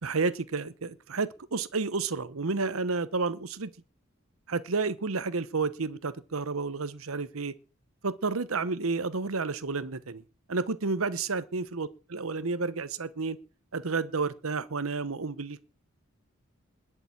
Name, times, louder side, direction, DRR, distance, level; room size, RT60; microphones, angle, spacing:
voice 1, 0.0-3.7 4.5-7.5 8.0-10.2 10.5-13.4 13.7-15.6, right 4 dB, 90° right, 1.0 m, -31 dB
20.5 x 6.9 x 8.6 m
head